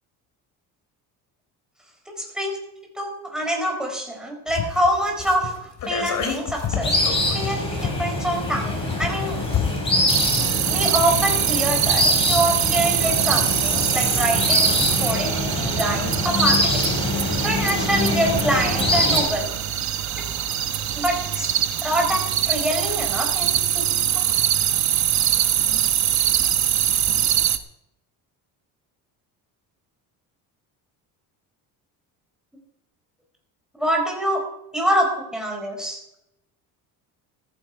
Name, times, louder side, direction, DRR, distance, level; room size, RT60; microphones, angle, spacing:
voice 1, 2.2-2.6 2.9-7.0 7.3-9.4 10.7-16.9 17.4-19.5 20.9-21.5 21.8-23.8 24.1-24.2 33.8-34.4 34.7-36.0, right 1 dB, ahead, 0 dB, 4.7 m, -25 dB
sound 1, 4.5-11.2 11.5-11.6, left 7 dB, 50° left, 3.2 m, -31 dB
sound 2, 6.8-19.2, left 1 dB, 15° left, 5.6 m, -24 dB
sound 3, 10.1-27.6, right 10 dB, 45° right, 1.1 m, -23 dB
15.0 x 14.5 x 4.8 m, 0.82 s
cardioid pair, 150°, 38 cm